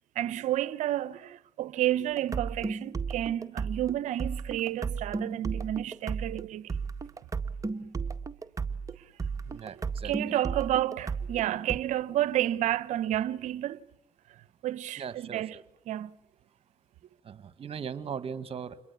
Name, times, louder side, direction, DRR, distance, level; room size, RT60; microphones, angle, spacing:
voice 1, 0.1-6.8 9.6-9.7 10.0-13.8 14.6-15.5 15.9-16.1, right 13 dB, 70° right, 1.0 m, -30 dB
sound 1, 2.2-11.8, right 5 dB, 25° right, 1.8 m, -34 dB
voice 2, 9.4-10.2 15.0-15.6 17.2-18.8, right 7 dB, 45° right, 1.8 m, -39 dB
28.0 x 22.0 x 8.5 m
supercardioid pair, 65°, 13 cm